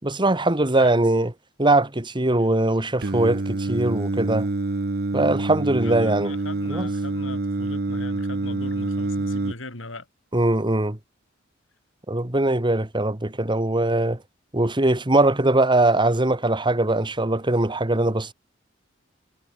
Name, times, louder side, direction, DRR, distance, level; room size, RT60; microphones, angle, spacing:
voice 1, 0.0-1.3 1.6-4.5 5.1-6.3 6.7-6.9 10.3-11.0 12.1-14.2 14.5-18.3, right 2 dB, 25° right, 1.9 m, -21 dB
voice 2, 0.8-1.1 2.3-2.6 5.8-10.1, left 2 dB, 75° left, 5.9 m, -40 dB
Singing, 3.0-9.5, right 2 dB, 55° right, 0.9 m, -26 dB
head